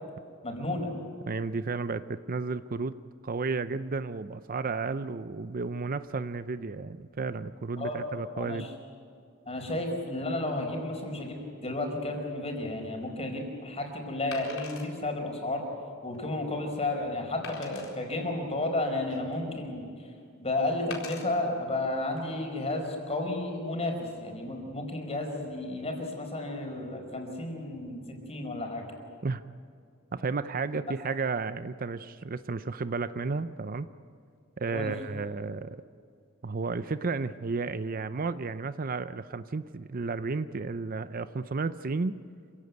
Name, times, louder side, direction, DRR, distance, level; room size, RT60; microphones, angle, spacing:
voice 1, 0.4-1.0 7.8-8.0 8.4-8.7 9.5-15.6 16.0-20.1 20.4-28.9 31.1-31.2 34.7-34.9, left 2 dB, 30° left, 3 dB, 4.7 m, -32 dB
voice 2, 1.3-2.9 3.2-8.7 29.2-29.4 30.1-33.9 34.6-35.8 36.4-42.2, right 4 dB, 45° right, 13 dB, 0.6 m, -32 dB
Wood, 12.7-12.9 14.3-14.9 15.5-15.6 16.1-16.2 17.4-17.9 18.7-19.5 20.9-21.3 22.0-22.2, left 5 dB, 90° left, 4.2 m, -43 dB
27.0 x 16.5 x 9.3 m, 2.4 s
head